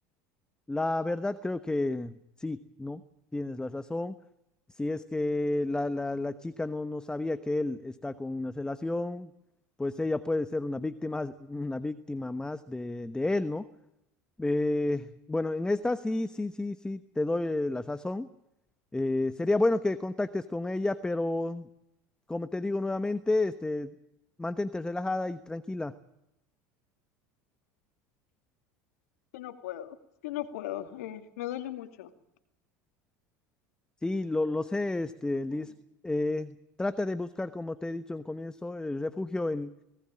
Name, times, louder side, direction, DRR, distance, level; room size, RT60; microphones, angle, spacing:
voice 1, 0.7-3.0 3.3-4.2 4.8-9.3 9.8-13.6 14.4-18.3 18.9-21.7 22.3-23.9 24.4-25.9 34.0-35.7 36.0-39.7, left 2 dB, 10° left, 12 dB, 1.1 m, -31 dB
voice 2, 29.3-30.0 30.2-32.1 35.5-35.7, left 13 dB, 85° left, 8 dB, 2.4 m, -37 dB
20.0 x 18.5 x 8.8 m, 0.84 s
supercardioid pair, 95°, 8 cm